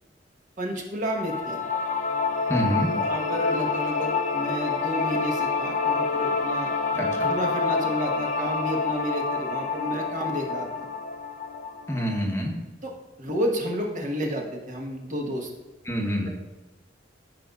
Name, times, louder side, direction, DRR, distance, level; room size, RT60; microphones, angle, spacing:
voice 1, 0.6-1.6 3.0-6.7 7.2-10.9 12.8-12.9 13.2-15.5, equal, 45° right, 0 dB, 1.2 m, -31 dB
sound 1, 1.2-12.2, left 4 dB, 40° left, 0.6 m, -27 dB
voice 2, 2.5-2.9 6.9-7.3 11.9-12.6 15.8-16.3, equal, 15° left, 0 dB, 1.0 m, -26 dB
13.0 x 5.3 x 2.4 m, 1.2 s
head